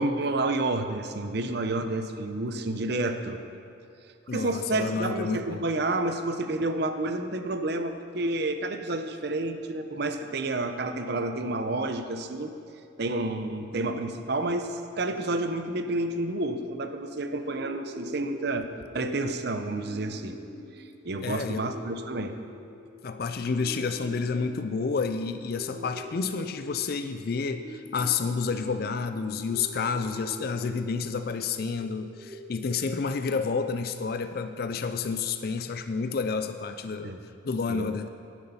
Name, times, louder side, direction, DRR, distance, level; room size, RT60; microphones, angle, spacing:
voice 1, 0.0-3.4 4.3-12.5 13.0-18.7 18.9-20.4 20.8-22.3 37.0-37.2 37.7-37.9, right 2 dB, 55° right, 8 dB, 0.7 m, -30 dB
voice 2, 4.3-5.7 21.2-21.7 23.0-37.1 37.4-38.1, left 5 dB, 50° left, 9 dB, 0.4 m, -30 dB
sound 1, 17.5-33.5, equal, 10° right, 1.7 m, -45 dB
11.0 x 10.5 x 5.6 m, 2.5 s
head